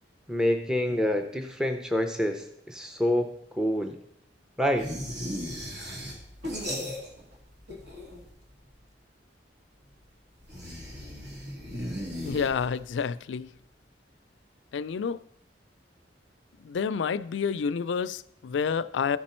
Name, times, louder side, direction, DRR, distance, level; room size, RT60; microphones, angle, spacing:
voice 1, 0.3-4.0 4.6-4.9, left 1 dB, 5° right, 0.5 m, -27 dB
sound 1, 4.8-7.4 7.6-8.4 10.4-13.0, equal, 75° right, 2.5 m, -37 dB
voice 2, 12.2-13.5 14.7-15.2 16.6-19.2, left 6 dB, 80° left, 0.4 m, -29 dB
13.5 x 5.2 x 4.3 m
head